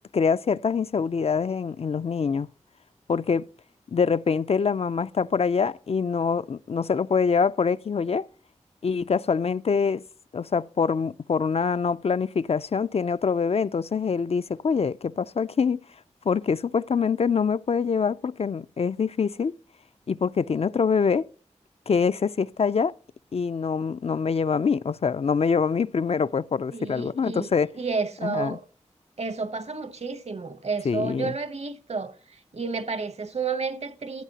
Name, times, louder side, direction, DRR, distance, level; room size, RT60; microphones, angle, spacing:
voice 1, 0.1-2.5 3.1-3.5 3.9-8.3 8.8-10.0 10.3-15.8 16.3-19.5 20.1-21.2 21.9-22.9 23.3-27.7 28.2-28.6 30.8-31.3, left 5 dB, 55° left, 0.4 m, -25 dB
voice 2, 26.7-28.6 29.2-32.1 32.5-34.2, right 4 dB, 60° right, 0.9 m, -31 dB
15.0 x 8.3 x 2.8 m
wide cardioid pair, 70°, 12 cm